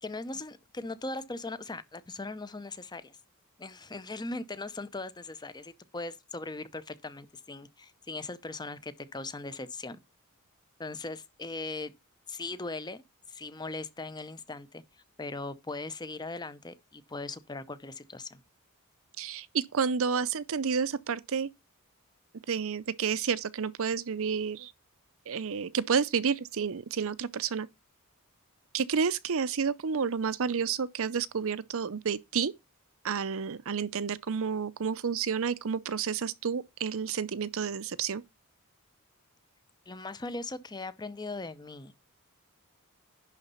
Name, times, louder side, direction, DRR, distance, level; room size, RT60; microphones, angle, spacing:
voice 1, 0.0-3.2 3.6-10.0 10.8-11.9 12.3-13.0 13.3-18.4 39.9-41.9, left 3 dB, 20° left, 0.7 m, -39 dB
voice 2, 19.2-21.5 22.5-24.7 25.3-27.7 28.7-32.5 33.0-38.2, right 6 dB, 65° right, 0.6 m, -30 dB
11.0 x 4.0 x 5.5 m
head